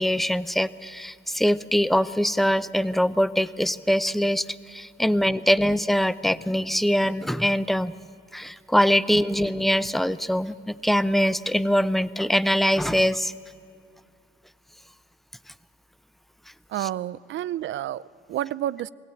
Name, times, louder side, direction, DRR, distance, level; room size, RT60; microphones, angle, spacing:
voice 1, 0.0-7.9 8.3-13.3, equal, ahead, 0.6 m, -23 dB
voice 2, 16.7-18.9, right 13 dB, 70° right, 0.5 m, -30 dB
21.5 x 16.5 x 9.0 m
cardioid pair, 90°, 20 cm